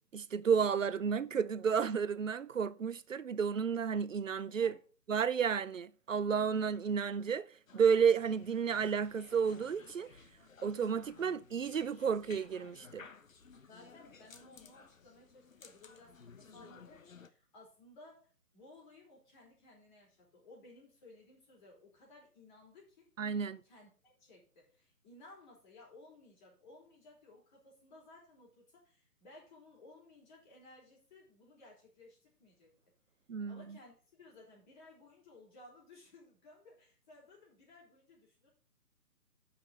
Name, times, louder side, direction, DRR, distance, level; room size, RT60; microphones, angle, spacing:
voice 1, 0.0-4.7 5.1-7.5 7.7-10.1 10.6-13.1 23.2-23.6 33.3-33.8, right 6 dB, 55° right, 0.6 m, -32 dB
sound 1, 7.7-17.3, left 5 dB, 55° left, 1.1 m, -57 dB
voice 2, 13.6-23.1 23.6-32.7 33.5-38.5, left 2 dB, 30° left, 4.7 m, -58 dB
9.9 x 5.9 x 5.5 m
figure-of-eight pair, 145°, 48 cm